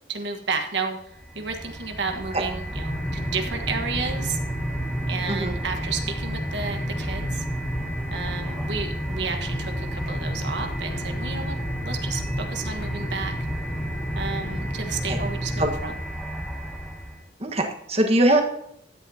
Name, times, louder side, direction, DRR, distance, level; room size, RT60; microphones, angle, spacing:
voice 1, 0.1-4.4 5.1-7.4 8.1-11.6 11.8-13.3 14.1-15.9, right 4 dB, 75° right, 5 dB, 1.4 m, -32 dB
sound 1, 1.1-17.3, equal, ahead, 1.4 m, -33 dB
sound 2, 2.7-15.7, equal, 50° left, 2.8 m, -32 dB
voice 2, 17.4-18.4, right 1 dB, 35° right, 3 dB, 1.4 m, -21 dB
15.5 x 11.0 x 2.8 m, 0.74 s
head